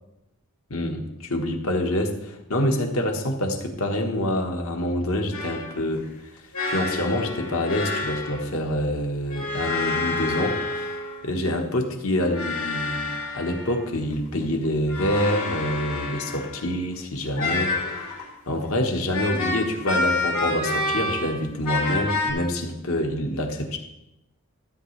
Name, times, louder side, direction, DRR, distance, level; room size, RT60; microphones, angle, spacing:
voice 1, 0.7-6.1 6.7-10.9 11.2-18.0 18.5-23.8, left 1 dB, 70° left, 3 dB, 1.5 m, -26 dB
sound 1, 5.3-5.7 6.5-8.5 9.3-11.3 12.2-13.9 14.9-16.7 17.4-18.3 19.1-21.4 21.6-22.3, left 3 dB, 90° left, 3.5 m, -28 dB
13.5 x 8.2 x 3.3 m, 0.89 s
head